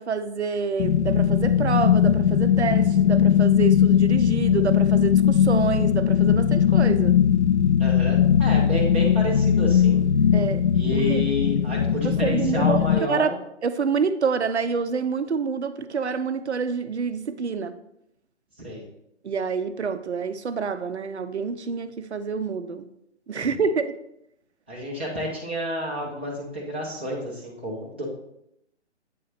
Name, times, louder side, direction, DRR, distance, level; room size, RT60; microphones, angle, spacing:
voice 1, 0.0-7.2 10.3-10.6 10.9-11.2 12.0-12.8 13.1-13.3 13.6-17.8 19.2-22.8 23.3-24.0, right 5 dB, 70° right, 0.5 m, -27 dB
sound 1, 0.8-13.0, left 8 dB, 70° left, 0.5 m, -19 dB
voice 2, 7.8-10.0 10.7-13.3 18.6-18.8 23.4-23.5 24.7-28.0, equal, 10° right, 0.5 m, -30 dB
8.4 x 2.9 x 4.0 m
figure-of-eight pair, 140°, 35 cm